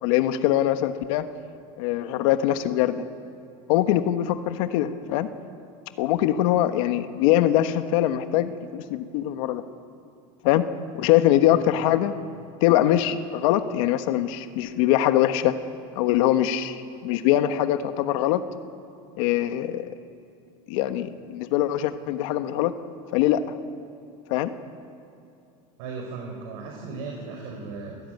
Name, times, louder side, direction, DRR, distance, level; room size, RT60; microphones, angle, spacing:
voice 1, 0.0-1.2 1.8-3.0 3.7-5.3 6.0-9.6 10.4-10.7 10.9-12.1 12.6-15.5 15.9-18.4 19.2-19.9 20.7-22.7 23.1-23.5 24.3-24.5, left 12 dB, 75° left, 9 dB, 1.4 m, -22 dB
voice 2, 25.8-28.0, right 4 dB, 70° right, 0 dB, 5.2 m, -36 dB
27.5 x 17.5 x 9.4 m, 2.6 s
supercardioid pair, 130°, 17 cm